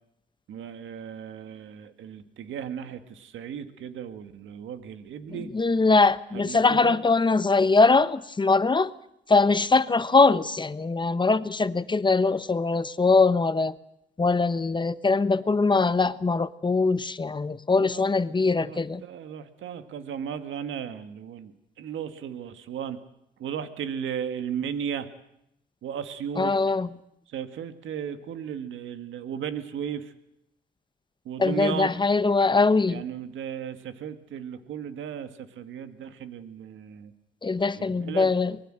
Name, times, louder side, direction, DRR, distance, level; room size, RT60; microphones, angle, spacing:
voice 1, 0.5-5.5 6.3-7.0 17.8-23.0 23.4-25.1 25.8-26.8 27.3-30.1 31.2-31.9 32.9-37.1 37.7-38.3, right 8 dB, 75° right, 2.0 m, -35 dB
voice 2, 5.5-8.9 9.3-13.7 14.2-19.0 26.4-26.9 31.4-33.0 37.4-38.5, left 3 dB, 25° left, 1.0 m, -22 dB
24.0 x 21.0 x 7.7 m
cardioid pair, 90°, 20 cm